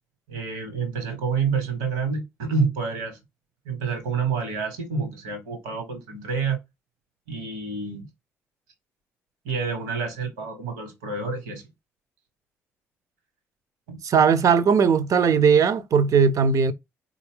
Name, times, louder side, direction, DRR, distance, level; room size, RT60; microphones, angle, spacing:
voice 1, 0.3-3.2 3.6-6.6 7.3-8.1 9.4-11.6 13.9-14.0, right 5 dB, 80° right, 1.2 m, -28 dB
voice 2, 14.0-16.7, right 6 dB, 50° right, 0.5 m, -18 dB
4.3 x 2.4 x 3.5 m
hypercardioid pair, 45°, 7 cm